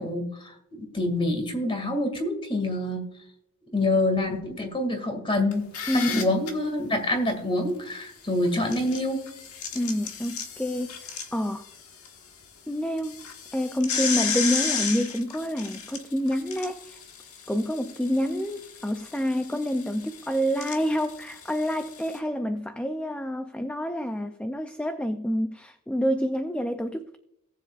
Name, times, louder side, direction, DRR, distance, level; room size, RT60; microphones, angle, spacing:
voice 1, 0.0-3.1 3.7-5.7 5.9-9.2, left 1 dB, 25° left, 2.1 m, -26 dB
sound 1, 5.5-6.5 8.4-12.1 12.4-12.5 13.0-22.2, left 6 dB, 90° left, 1.4 m, -34 dB
voice 2, 5.9-6.3 9.7-11.6 12.7-13.2 13.5-17.0 17.5-27.2, equal, 5° left, 0.4 m, -28 dB
18.0 x 7.5 x 2.4 m
head